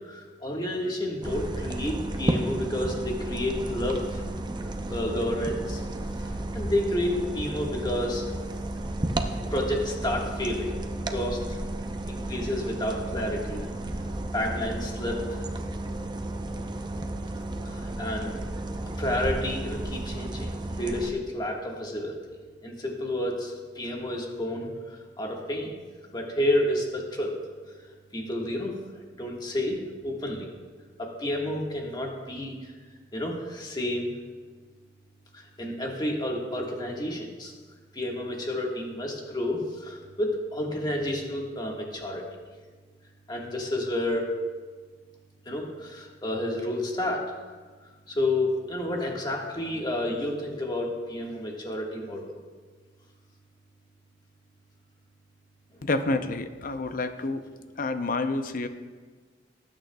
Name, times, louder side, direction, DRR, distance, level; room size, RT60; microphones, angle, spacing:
voice 1, 0.0-4.2 4.9-5.8 6.2-8.2 9.5-11.6 12.1-13.7 14.3-15.4 17.6-18.3 19.0-20.5 20.8-22.2 22.6-25.7 26.1-27.3 27.7-27.8 28.1-28.8 29.2-30.5 31.0-32.7 33.1-34.1 35.3-37.5 37.9-42.2 43.3-44.3 45.4-47.2 48.1-52.3 55.8-55.9, left 1 dB, 25° left, -1 dB, 1.6 m, -30 dB
Light Rain Home, 1.2-21.1, right 1 dB, 25° right, 0.7 m, -33 dB
voice 2, 55.8-57.5 57.8-58.7, left 2 dB, 50° left, 9 dB, 0.6 m, -28 dB
19.0 x 8.9 x 2.3 m, 1.5 s
head